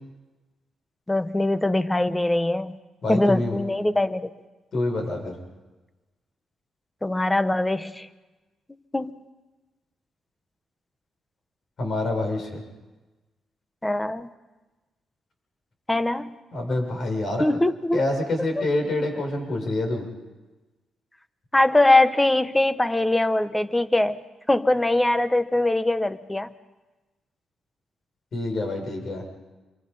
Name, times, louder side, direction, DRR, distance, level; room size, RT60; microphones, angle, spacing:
voice 1, 1.1-2.8 3.1-4.3 7.0-8.1 8.9-9.1 13.8-14.3 15.9-16.3 17.4-18.0 18.6-18.7 21.5-26.5, left 2 dB, 10° left, 12 dB, 1.1 m, -22 dB
voice 2, 3.0-3.6 4.7-5.3 11.8-12.6 16.5-17.4 17.9-20.0 28.3-29.2, left 2 dB, 55° left, 3 dB, 6.8 m, -26 dB
27.0 x 24.0 x 5.6 m, 1.2 s
cardioid pair, 95°, 0 cm